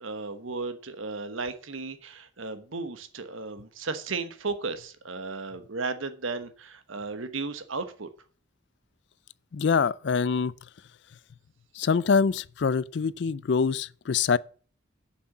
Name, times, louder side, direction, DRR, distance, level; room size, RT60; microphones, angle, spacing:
voice 1, 0.0-8.1, right 4 dB, 85° right, 1.2 m, -35 dB
voice 2, 9.5-10.5 11.7-14.4, left 5 dB, 60° left, 0.4 m, -24 dB
7.8 x 6.1 x 7.1 m
head